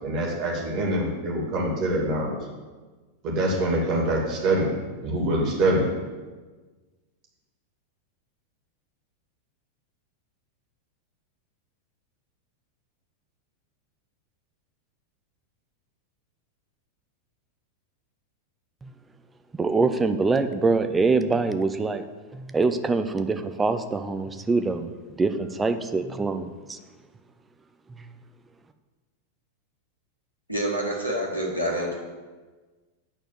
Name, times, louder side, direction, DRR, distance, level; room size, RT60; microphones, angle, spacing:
voice 1, 0.0-2.3 3.2-4.7 5.0-5.9, right 1 dB, 35° right, -2 dB, 2.6 m, -24 dB
voice 2, 19.5-22.0 22.3-24.9 25.2-26.8, right 3 dB, 15° right, 9 dB, 0.6 m, -24 dB
voice 3, 30.5-31.9, right 1 dB, 85° right, -2 dB, 1.8 m, -27 dB
9.0 x 4.5 x 7.5 m, 1.3 s
figure-of-eight pair, 90°, 0 cm